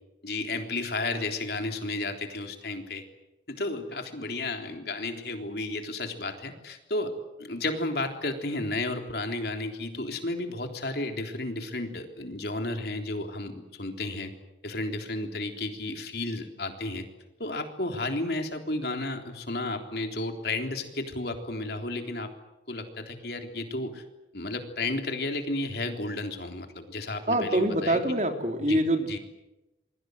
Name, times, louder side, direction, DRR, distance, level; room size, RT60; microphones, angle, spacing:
voice 1, 0.2-3.0 3.5-7.1 7.4-14.3 14.6-17.0 17.4-22.3 22.7-24.0 24.3-28.2 28.7-28.8 29.1-29.2, left 2 dB, 60° left, 5 dB, 3.6 m, -32 dB
voice 2, 27.3-29.2, right 1 dB, 40° right, 5 dB, 3.2 m, -25 dB
27.5 x 22.5 x 8.0 m, 0.98 s
head